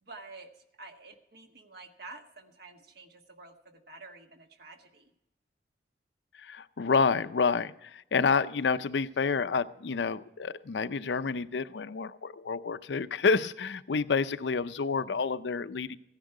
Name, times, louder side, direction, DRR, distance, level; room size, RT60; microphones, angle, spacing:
voice 1, 0.0-5.1, right 3 dB, 65° right, 5 dB, 1.4 m, -49 dB
voice 2, 6.3-16.0, left 5 dB, 75° left, 13 dB, 0.5 m, -29 dB
16.0 x 10.5 x 4.8 m, 0.85 s
head